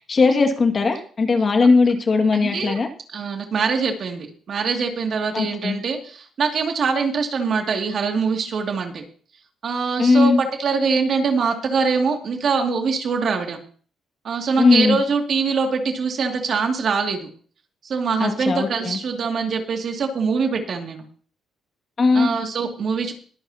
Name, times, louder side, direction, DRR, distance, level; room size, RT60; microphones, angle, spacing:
voice 1, 0.0-2.9 5.3-5.8 10.0-10.4 14.6-15.0 18.2-19.0 22.0-22.3, left 4 dB, 40° left, 5 dB, 2.1 m, -18 dB
voice 2, 2.3-2.8 3.1-9.0 9.6-13.6 14.2-17.3 17.8-21.0 22.1-23.1, right 5 dB, 55° right, 3 dB, 2.4 m, -23 dB
22.0 x 9.0 x 2.9 m, 0.43 s
cardioid pair, 90°, 0 cm